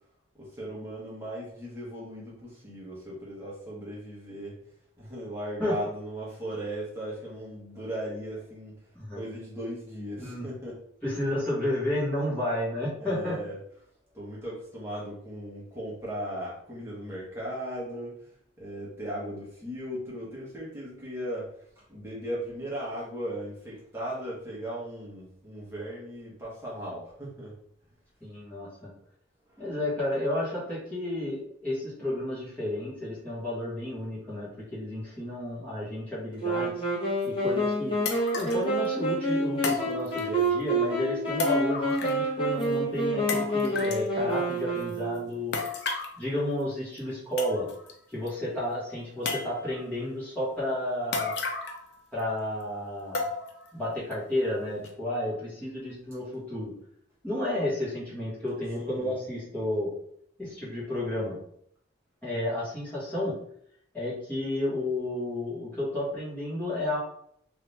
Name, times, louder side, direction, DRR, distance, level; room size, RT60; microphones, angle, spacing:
voice 1, 0.3-4.6 5.0-8.8 9.1-10.8 13.0-13.6 14.1-27.6 29.5-29.6 58.8-59.1, right 1 dB, 15° right, -7 dB, 1.1 m, -37 dB
voice 2, 11.0-13.3 28.2-28.9 29.6-36.7 37.2-38.0 38.3-45.6 46.2-47.7 48.1-51.3 52.1-53.2 53.7-56.7 57.2-59.9 60.4-61.4 62.2-63.3 63.9-67.0, left 1 dB, 10° left, -10 dB, 1.4 m, -31 dB
Wind instrument woodwind instrument, 36.4-45.4, right 1 dB, 25° left, 1.1 m, -28 dB
sound 1, 37.2-37.3 38.0-38.7 39.6-40.5 41.4-42.3 42.6-42.7 43.3-44.1 45.5-46.2 47.0-47.1 47.4-47.9 48.3-48.4 49.2-49.8 51.1-51.9 52.2-52.3 53.1-53.7 54.1-54.2 54.8-54.9, left 3 dB, 55° left, 0.5 m, -33 dB
2.7 x 2.7 x 3.4 m, 0.67 s
head